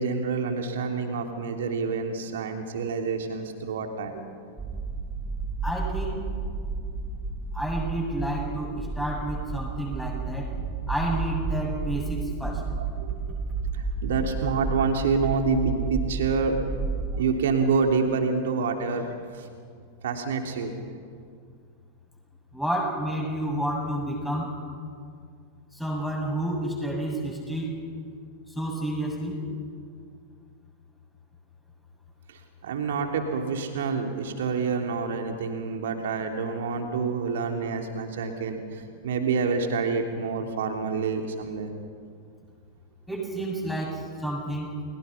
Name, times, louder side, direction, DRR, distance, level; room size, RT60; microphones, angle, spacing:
voice 1, 0.0-4.2 13.0-13.2 14.0-16.6 17.1-19.4 20.0-20.7 32.3-41.7, right 5 dB, 60° right, 4 dB, 3.3 m, -27 dB
sound 1, 4.6-17.2, right 4 dB, 10° right, 2.3 m, -32 dB
voice 2, 5.6-6.2 7.5-10.5 10.9-12.6 22.5-24.5 25.7-27.7 28.5-29.4 43.1-44.7, right 1 dB, 5° left, -1 dB, 7.6 m, -30 dB
30.0 x 22.5 x 5.9 m, 2.2 s
figure-of-eight pair, 90°, 0 cm